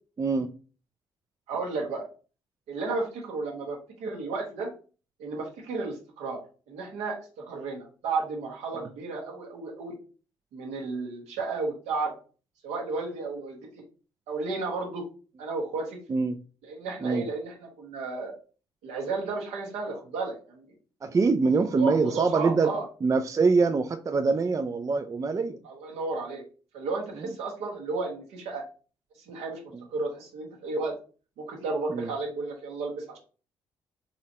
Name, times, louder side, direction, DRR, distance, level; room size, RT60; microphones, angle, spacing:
voice 1, 0.2-0.5 16.1-16.4 17.0-17.3 21.0-22.7 23.0-25.6 27.2-27.3 29.7-29.8 31.9-32.1, right 4 dB, 30° right, 0.4 m, -24 dB
voice 2, 1.5-2.1 2.7-4.7 5.2-10.0 10.5-12.1 12.6-13.7 14.3-15.0 15.4-16.0 16.6-18.3 18.8-20.6 21.6-22.8 25.6-26.4 26.7-28.6 29.3-29.6 29.9-30.9 31.4-33.2, right 3 dB, 75° right, 1.3 m, -33 dB
4.0 x 3.0 x 2.7 m
hypercardioid pair, 45°, 11 cm